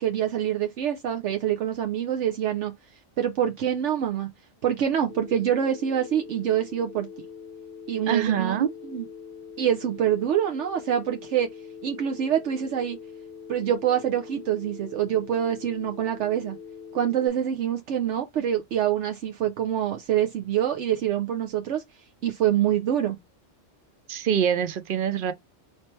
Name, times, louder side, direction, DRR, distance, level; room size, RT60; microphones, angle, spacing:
voice 1, 0.0-2.7 3.2-4.3 4.6-7.1 7.9-8.6 8.9-9.0 9.6-11.5 11.8-13.0 13.5-16.6 16.9-21.8 22.2-23.2, right 10 dB, 75° right, 1.0 m, -25 dB
Telephone, 5.1-17.3, left 6 dB, 55° left, 0.9 m, -43 dB
voice 2, 8.1-8.7 24.1-25.3, right 9 dB, 60° right, 0.6 m, -24 dB
4.3 x 3.2 x 3.1 m
omnidirectional pair, 1.3 m